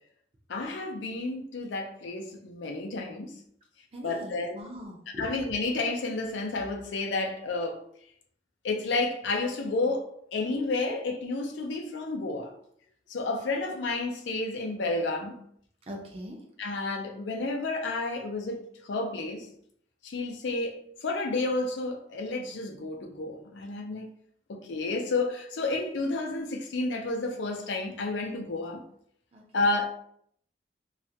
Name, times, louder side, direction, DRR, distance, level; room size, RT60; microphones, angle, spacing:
voice 1, 0.5-3.3 4.0-4.6 5.2-7.8 8.6-12.5 13.1-15.4 16.6-19.5 20.0-24.1 24.5-28.8 29.5-29.8, left 3 dB, 80° left, 0.4 m, -31 dB
voice 2, 3.9-5.3 15.9-16.4 29.3-29.7, equal, 30° right, 0.5 m, -41 dB
2.3 x 2.1 x 2.6 m
head